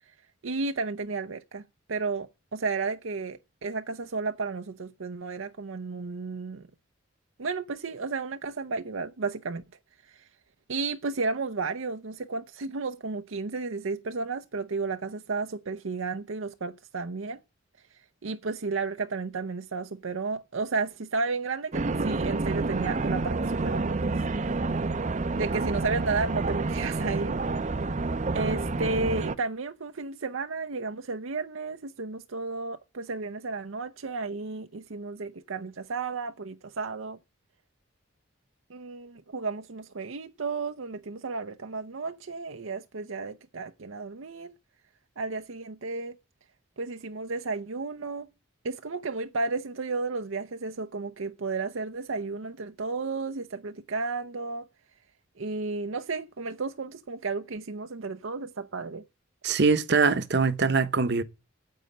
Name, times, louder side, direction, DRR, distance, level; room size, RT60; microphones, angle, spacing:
voice 1, 0.4-1.6 1.9-6.7 7.4-9.6 10.1-10.2 10.7-17.4 18.2-24.1 25.3-27.4 28.3-37.2 38.7-44.5 45.2-46.1 46.8-48.3 48.6-54.6 55.4-59.0, right 4 dB, 75° right, 0.7 m, -33 dB
sound 1, 21.7-29.4, right 3 dB, 35° right, 0.6 m, -29 dB
voice 2, 59.4-61.2, right 4 dB, 55° right, 1.0 m, -23 dB
9.5 x 7.7 x 9.0 m
head